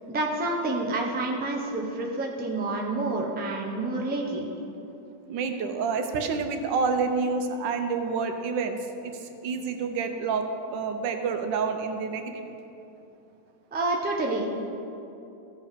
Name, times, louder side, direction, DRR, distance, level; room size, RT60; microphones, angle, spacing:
voice 1, 0.1-4.5 13.7-14.5, right 2 dB, 10° right, -1 dB, 0.5 m, -28 dB
voice 2, 5.3-8.8 9.0-9.2 9.4-12.4, right 5 dB, 90° right, 6 dB, 1.5 m, -28 dB
14.5 x 5.5 x 5.1 m, 2.9 s
omnidirectional pair, 1.9 m